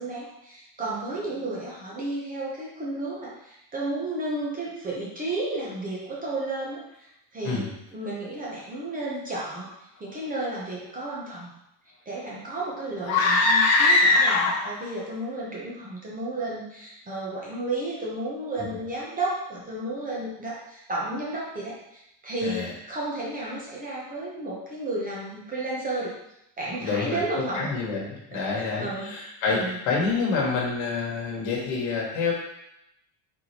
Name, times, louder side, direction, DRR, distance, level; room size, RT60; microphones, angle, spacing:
voice 1, 0.0-7.6 7.9-9.7 10.0-11.5 12.1-26.2 26.6-27.7 28.6-29.1 29.5-29.8, right 2 dB, 15° right, -5 dB, 0.7 m, -32 dB
sound 1, 13.0-14.8, left 2 dB, 35° left, 0.4 m, -20 dB
voice 2, 22.4-22.7 26.8-32.3, left 4 dB, 65° left, -3 dB, 1.4 m, -28 dB
4.0 x 3.3 x 2.9 m, 0.82 s
cardioid pair, 160°, 50 cm